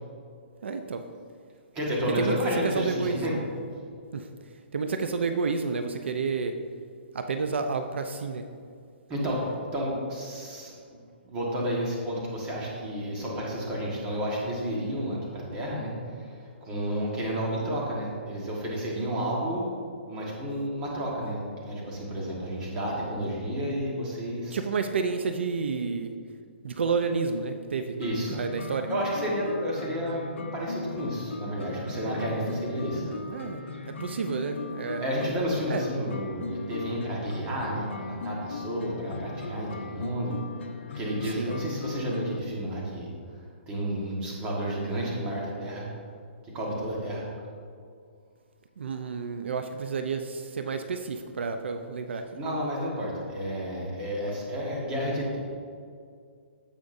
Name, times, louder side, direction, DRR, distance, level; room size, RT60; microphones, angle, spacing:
voice 1, 0.6-1.0 2.2-2.3 2.6-3.4 4.1-4.3 4.7-6.6 7.1-8.4 24.5-26.1 26.6-28.0 28.3-28.9 32.9-33.6 33.9-35.2 35.7-35.8 41.4-41.6 48.8-52.2, right 5 dB, 75° right, 7 dB, 0.6 m, -30 dB
voice 2, 1.7-3.4 9.1-10.7 11.3-15.9 16.2-16.3 16.6-19.7 20.1-24.6 28.0-28.3 28.9-30.3 30.5-33.0 35.0-40.3 40.9-43.1 43.7-45.9 46.5-47.3 52.3-55.4, equal, 15° right, -4 dB, 1.4 m, -31 dB
sound 1, 28.0-42.4, left 3 dB, 90° left, 0.7 m, -38 dB
15.5 x 5.2 x 2.6 m, 2.2 s
hypercardioid pair, 175°, 6 cm